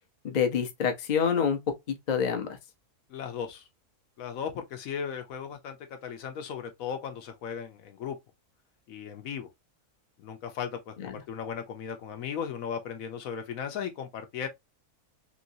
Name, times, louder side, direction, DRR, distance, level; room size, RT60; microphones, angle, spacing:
voice 1, 0.2-1.6 1.9-2.6 11.0-11.1, left 7 dB, 85° left, 0.3 m, -27 dB
voice 2, 3.1-3.7 4.2-8.2 8.9-9.5 10.2-14.5, left 7 dB, 65° left, 1.0 m, -36 dB
3.0 x 2.8 x 2.6 m
omnidirectional pair, 1.7 m